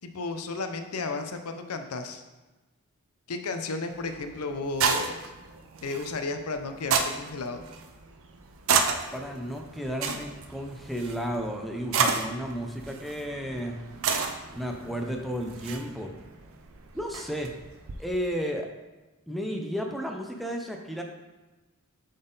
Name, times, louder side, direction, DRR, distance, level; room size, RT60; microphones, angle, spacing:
voice 1, 0.0-2.2 3.3-5.2 5.8-7.6, left 3 dB, 80° left, 7 dB, 0.6 m, -33 dB
sound 1, 3.9-18.1, right 5 dB, 65° right, 0.6 m, -32 dB
voice 2, 9.1-13.8 14.5-16.1 16.9-17.5 18.0-18.7 19.3-21.0, equal, ahead, 2 dB, 0.5 m, -33 dB
7.5 x 4.0 x 3.9 m, 1.2 s
head